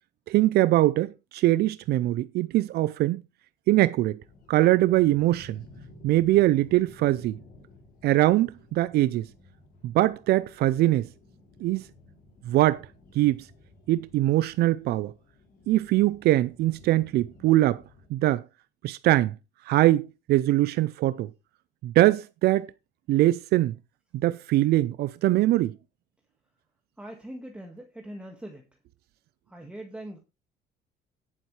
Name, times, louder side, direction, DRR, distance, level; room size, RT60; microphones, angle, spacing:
voice 1, 0.3-3.2 3.7-4.2 4.5-5.6 6.0-7.4 8.0-9.3 9.8-11.1 11.6-11.9 12.5-12.8 13.1-13.5 13.9-15.1 15.7-17.8 18.1-18.4 18.8-19.3 19.6-21.3 21.8-22.7 23.1-23.7 24.1-25.7, right 16 dB, 70° right, 0.5 m, -22 dB
sound 1, 4.2-18.1, left 2 dB, 60° left, 4.4 m, -54 dB
voice 2, 27.0-28.7 29.5-30.2, right 1 dB, 5° right, 1.7 m, -41 dB
17.0 x 7.4 x 3.2 m
cardioid pair, 110°, 17 cm